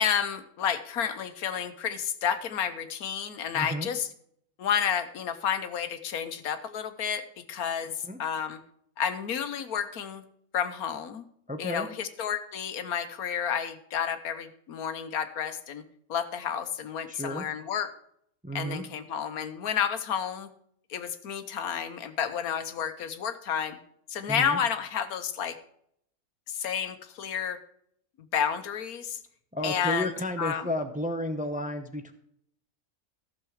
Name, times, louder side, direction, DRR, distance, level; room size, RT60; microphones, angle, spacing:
voice 1, 0.0-4.1 4.6-7.9 8.2-8.6 9.0-10.2 10.5-11.2 11.6-15.8 16.1-17.9 18.5-20.5 20.9-23.8 24.1-25.6 26.5-27.6 28.3-29.2 29.6-30.1 30.4-30.6, left 8 dB, 85° left, 10 dB, 1.4 m, -30 dB
voice 2, 3.5-3.9 8.0-8.2 11.5-11.9 17.1-17.5 18.4-18.8 24.3-24.6 29.5-32.1, equal, 10° right, 7 dB, 0.6 m, -32 dB
14.5 x 6.8 x 4.8 m, 0.70 s
omnidirectional pair, 1.5 m